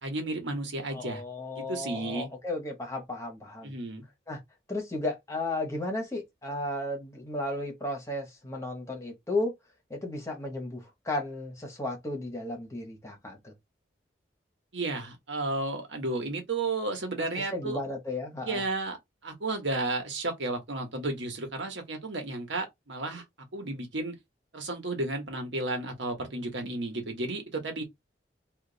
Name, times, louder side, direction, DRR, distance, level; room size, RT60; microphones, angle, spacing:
voice 1, 0.0-1.2 1.5-2.3 3.6-4.0 14.7-17.8 18.4-19.0 19.2-23.2 23.5-24.1 24.5-27.8, right 2 dB, 85° right, 1.2 m, -33 dB
voice 2, 0.9-3.8 4.3-4.4 4.7-9.5 9.9-13.5 17.3-18.6, left 2 dB, 15° left, 1.1 m, -34 dB
2.9 x 2.5 x 3.9 m
head